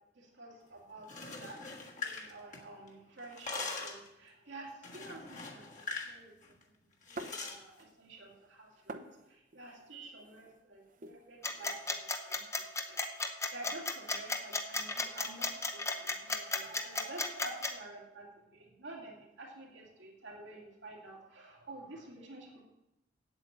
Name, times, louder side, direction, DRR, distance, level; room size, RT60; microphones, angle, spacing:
voice 1, 0.1-6.7 7.1-13.0 13.5-22.6, right 2 dB, 85° right, -1 dB, 2.5 m, -50 dB
sound 1, 1.0-2.9 3.2-4.1 4.8-6.2 6.4-6.6 7.1-7.6, left 3 dB, 40° left, 1.5 m, -42 dB
sound 2, 7.2-8.0 8.3-12.0, right 2 dB, 45° right, 0.7 m, -49 dB
sound 3, 11.4-17.7, left 3 dB, 15° left, 0.8 m, -33 dB
8.7 x 8.1 x 7.4 m, 0.92 s
head